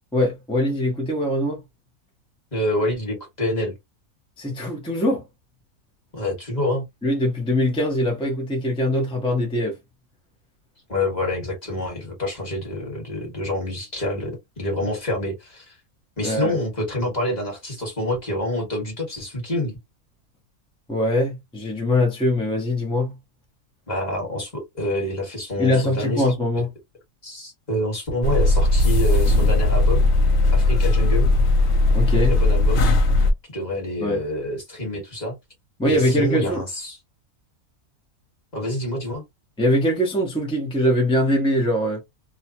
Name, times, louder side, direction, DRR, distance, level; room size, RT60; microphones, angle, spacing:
voice 1, 0.1-1.6 4.4-5.2 7.0-9.8 16.2-16.6 20.9-23.2 25.6-26.7 31.9-32.3 34.0-34.2 35.8-36.6 39.6-42.0, left 1 dB, 5° left, 0.4 m, -22 dB
voice 2, 2.5-3.7 6.1-6.8 10.9-15.7 16.2-19.8 23.9-26.2 27.2-30.1 30.5-31.3 32.2-33.0 33.5-35.3 35.8-37.0 38.5-39.2, left 1 dB, 30° left, 1.5 m, -27 dB
sound 1, 28.2-33.3, left 2 dB, 65° left, 0.8 m, -18 dB
2.8 x 2.2 x 2.8 m
omnidirectional pair, 1.5 m